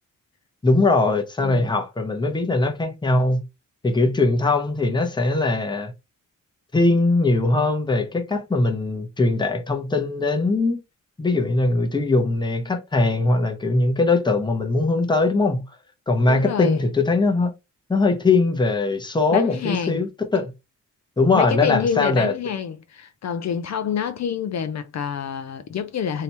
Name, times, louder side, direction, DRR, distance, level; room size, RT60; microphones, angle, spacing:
voice 1, 0.6-3.4 3.8-5.9 6.7-10.8 11.2-15.6 16.1-17.5 17.9-20.5 21.2-22.3, left 3 dB, 15° left, 0.7 m, -21 dB
voice 2, 1.4-1.7 16.3-16.8 19.3-20.0 21.3-26.2, left 7 dB, 60° left, 0.4 m, -27 dB
3.2 x 2.8 x 2.9 m
wide cardioid pair, 145°, 32 cm